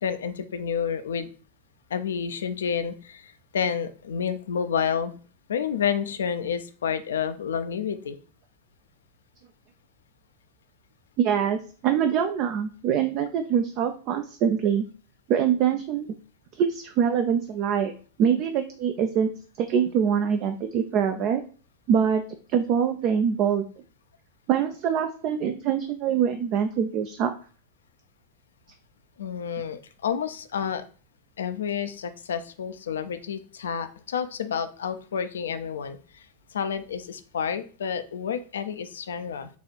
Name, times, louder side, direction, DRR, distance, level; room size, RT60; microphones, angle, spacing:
voice 1, 0.0-1.3 1.9-5.1 5.5-8.2 29.2-30.8 31.4-36.0 36.5-39.5, left 7 dB, 65° left, 11 dB, 0.4 m, -29 dB
voice 2, 11.2-14.8 15.3-16.1 16.6-17.9 18.2-19.3 19.6-21.4 21.9-22.2 22.5-23.6 24.5-27.3, right 8 dB, 40° right, 7 dB, 0.4 m, -24 dB
4.0 x 2.4 x 4.4 m, 0.39 s
figure-of-eight pair, 90°, 0 cm